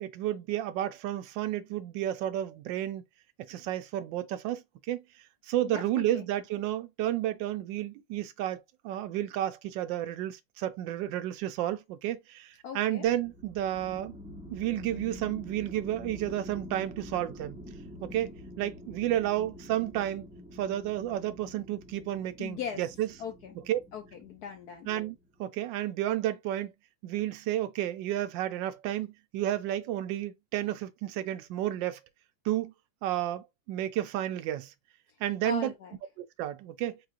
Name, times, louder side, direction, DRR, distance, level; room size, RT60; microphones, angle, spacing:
voice 1, 0.0-3.0 3.5-5.0 5.4-14.2 14.5-17.6 18.0-20.2 20.6-23.1 23.7-23.8 24.9-26.7 27.0-32.0 32.4-32.7 33.0-34.7 35.2-35.7 36.2-37.0, right 12 dB, 75° right, 1.2 m, -31 dB
voice 2, 5.6-6.2 12.6-13.1 22.4-22.8 23.2-23.6 23.9-24.9 35.4-36.0, left 7 dB, 65° left, 1.0 m, -39 dB
sound 1, 13.0-25.1, left 1 dB, 10° right, 0.3 m, -47 dB
4.5 x 3.0 x 2.4 m
omnidirectional pair, 2.2 m